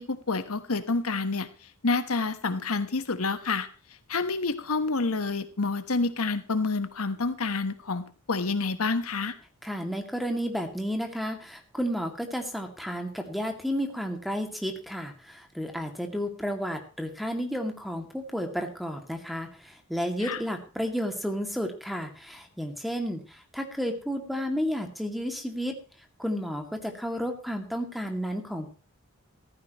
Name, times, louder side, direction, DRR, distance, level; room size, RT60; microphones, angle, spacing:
voice 1, 0.0-1.5 1.8-3.7 4.1-9.3 20.2-20.4, left 3 dB, 75° left, 11 dB, 1.2 m, -28 dB
voice 2, 9.6-25.7 26.2-28.7, equal, ahead, 4 dB, 2.3 m, -32 dB
15.0 x 14.5 x 3.1 m, 0.38 s
head